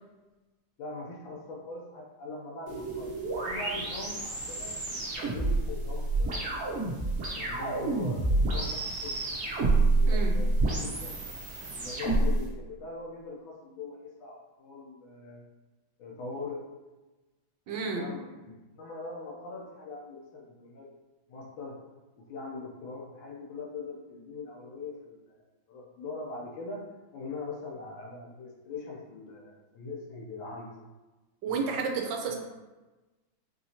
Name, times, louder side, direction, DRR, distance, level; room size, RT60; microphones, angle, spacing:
voice 1, 0.8-3.2 3.4-6.6 7.4-9.2 10.0-11.1 11.7-15.4 16.0-16.7 17.8-20.9 21.3-21.8 22.2-25.4 25.7-26.8 27.1-30.7 31.5-31.9, left 3 dB, 90° left, -2 dB, 1.5 m, -41 dB
radiowave selection, 2.7-12.4, right 2 dB, 45° right, 1.0 m, -28 dB
voice 2, 17.7-18.1 31.4-32.4, right 5 dB, 70° right, 1 dB, 1.2 m, -31 dB
5.3 x 2.9 x 2.8 m, 1.2 s
omnidirectional pair, 2.1 m